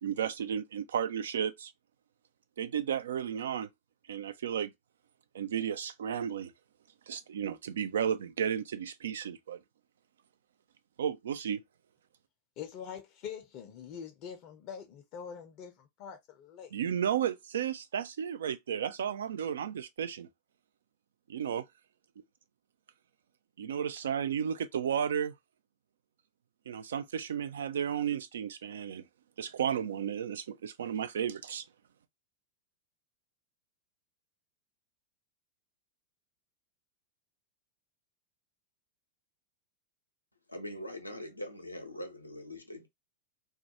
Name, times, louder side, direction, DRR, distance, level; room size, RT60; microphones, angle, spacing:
voice 1, 0.0-1.7 2.6-3.7 4.1-4.7 5.3-6.5 7.1-9.6 11.0-11.6 16.7-20.3 21.3-21.6 23.6-25.3 26.7-29.0 29.4-31.6, right 8 dB, 65° right, 0.3 m, -33 dB
voice 2, 12.6-16.7, left 7 dB, 40° left, 0.5 m, -44 dB
voice 3, 40.5-42.9, left 1 dB, 85° left, 0.6 m, -42 dB
2.3 x 2.2 x 2.8 m
figure-of-eight pair, 90°, 0 cm